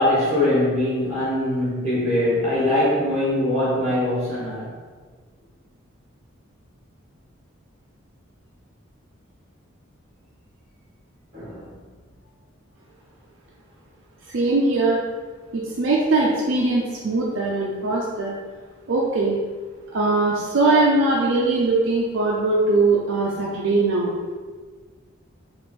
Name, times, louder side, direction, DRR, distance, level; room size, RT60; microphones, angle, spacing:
voice 1, 0.0-4.7 11.3-11.7, left 1 dB, 30° right, -7 dB, 1.5 m, -22 dB
voice 2, 14.3-15.0 15.5-18.3 18.9-19.4 19.9-24.1, right 2 dB, 65° right, -4 dB, 0.5 m, -21 dB
3.6 x 2.5 x 4.1 m, 1.5 s
head